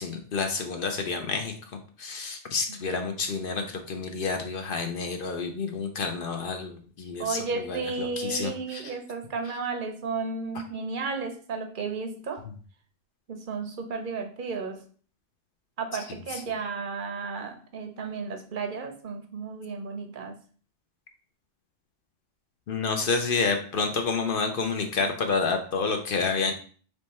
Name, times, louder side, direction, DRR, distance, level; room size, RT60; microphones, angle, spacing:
voice 1, 0.0-1.5 2.0-8.8 22.7-26.5, left 4 dB, 55° left, 5 dB, 0.7 m, -29 dB
voice 2, 7.2-12.4 13.3-14.8 15.8-20.3, right 4 dB, 50° right, 5 dB, 0.7 m, -33 dB
3.5 x 3.0 x 4.1 m, 0.43 s
omnidirectional pair, 1.3 m